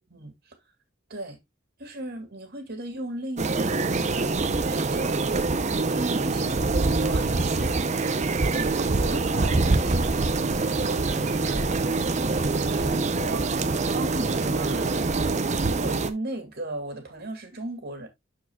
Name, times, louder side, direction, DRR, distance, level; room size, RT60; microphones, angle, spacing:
voice 1, 1.8-8.3 8.5-11.7 12.6-18.1, right 1 dB, 50° right, 2.4 m, -37 dB
sound 1, 3.4-16.1, right 3 dB, 35° right, 0.6 m, -25 dB
sound 2, 7.1-15.1, right 1 dB, 15° right, 2.2 m, -50 dB
12.0 x 4.6 x 2.3 m
head